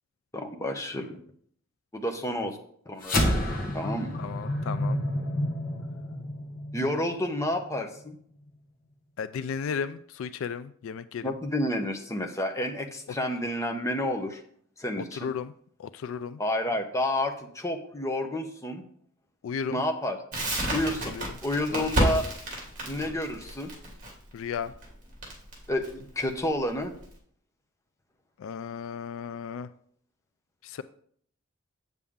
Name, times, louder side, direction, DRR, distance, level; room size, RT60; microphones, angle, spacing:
voice 1, 0.3-1.2 1.9-2.6 2.9-4.2 6.7-8.2 11.2-14.4 14.8-15.3 16.4-18.8 19.7-20.2 20.7-21.1 21.4-22.3 22.9-23.7 25.7-26.9, left 1 dB, 15° left, 4 dB, 0.8 m, -30 dB
sound 1, 3.0-7.7, left 1 dB, 40° left, 1.2 m, -29 dB
voice 2, 4.2-5.1 9.2-11.3 15.0-15.5 15.8-16.4 19.4-19.8 21.1-21.2 21.7-21.9 24.3-24.7 28.4-29.7 30.6-30.8, left 6 dB, 65° left, 14 dB, 0.3 m, -34 dB
Crackle, 20.3-27.1, right 1 dB, 40° right, 2.5 m, -31 dB
8.1 x 7.0 x 3.6 m, 0.62 s
head